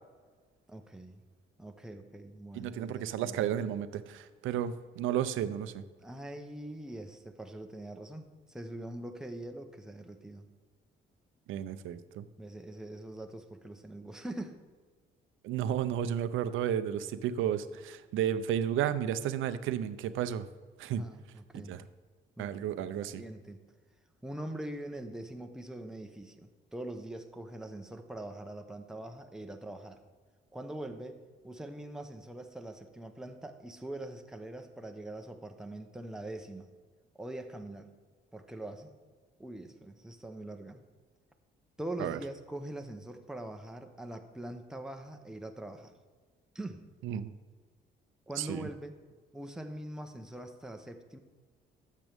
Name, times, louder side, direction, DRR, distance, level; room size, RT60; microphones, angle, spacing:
voice 1, 0.7-1.2 1.6-3.6 6.0-10.5 12.4-14.6 21.0-21.8 22.4-22.6 23.1-23.6 24.2-30.0 30.5-31.2 31.4-36.7 37.2-37.9 38.3-38.9 39.4-40.8 41.8-45.9 46.5-46.8 48.3-49.0 49.3-51.2, right 1 dB, 5° right, 5 dB, 0.9 m, -43 dB
voice 2, 2.5-5.8 11.5-12.2 15.4-20.5 20.8-21.0 21.7-21.8 22.4-23.2 42.0-42.2 47.0-47.3 48.4-48.7, right 10 dB, 85° right, 13 dB, 0.5 m, -32 dB
12.0 x 7.5 x 3.5 m, 1.4 s
cardioid pair, 90°, 20 cm